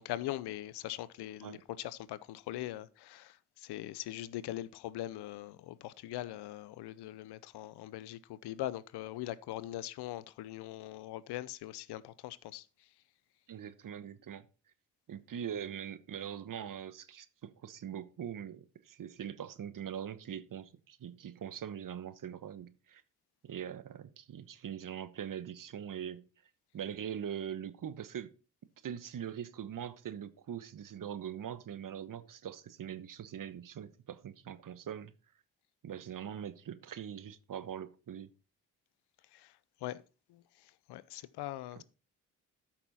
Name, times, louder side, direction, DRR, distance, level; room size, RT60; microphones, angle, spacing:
voice 1, 0.0-12.7 39.3-39.5 39.8-40.0 40.3-41.8, left 14 dB, 70° left, 0.8 m, -41 dB
voice 2, 13.5-14.4 15.1-23.0 23.4-26.3 26.7-28.3 28.8-35.1 35.8-38.3 41.8-41.9, right 9 dB, 50° right, 1.2 m, -42 dB
13.0 x 5.9 x 4.2 m
hypercardioid pair, 50°, 41 cm